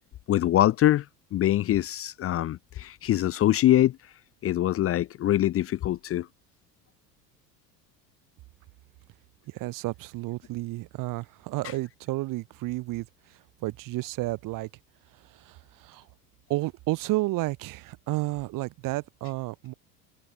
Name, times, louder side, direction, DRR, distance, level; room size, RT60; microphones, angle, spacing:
voice 1, 0.3-1.0 1.3-4.0 4.4-6.3, left 13 dB, 25° left, 0.9 m, -23 dB
voice 2, 9.5-13.1 13.6-14.7 15.3-16.1 16.5-19.7, right 19 dB, 40° right, 1.6 m, -31 dB
figure-of-eight pair, 75°, 50 cm